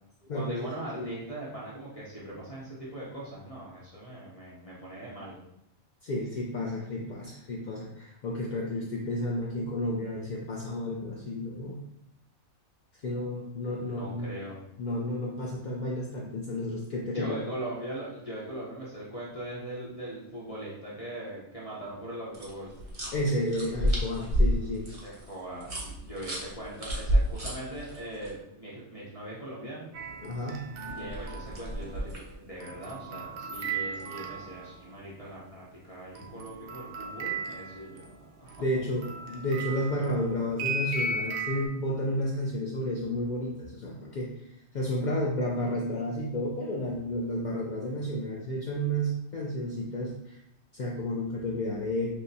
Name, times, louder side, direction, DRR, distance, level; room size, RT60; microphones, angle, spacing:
voice 1, 0.3-5.4 13.9-14.6 17.1-22.7 25.0-29.9 31.0-32.1 32.4-38.8, right 1 dB, 35° left, -7 dB, 0.8 m, -40 dB
voice 2, 6.0-11.8 13.0-14.3 14.8-17.4 23.1-24.9 30.2-31.1 38.6-44.3 44.7-50.3 50.7-52.1, left 1 dB, 60° left, -3 dB, 0.4 m, -31 dB
sound 1, 22.3-28.3 30.9-32.3, equal, 30° right, 0.8 m, -30 dB
sound 2, 29.9-35.0 36.1-41.7, right 3 dB, 60° right, 0.7 m, -37 dB
6.3 x 2.1 x 2.6 m, 0.81 s
omnidirectional pair, 1.3 m